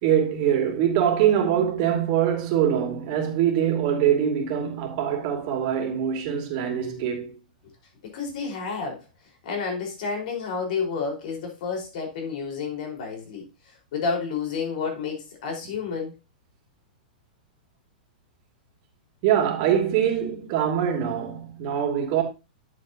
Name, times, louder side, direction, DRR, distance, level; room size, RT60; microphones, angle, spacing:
voice 1, 0.0-7.4 19.2-22.2, right 9 dB, 50° right, 2.6 m, -23 dB
voice 2, 8.1-9.0 9.4-13.5 13.9-16.1, left 5 dB, 65° left, 4.9 m, -30 dB
10.5 x 7.2 x 2.9 m
hypercardioid pair, 130°, 5 cm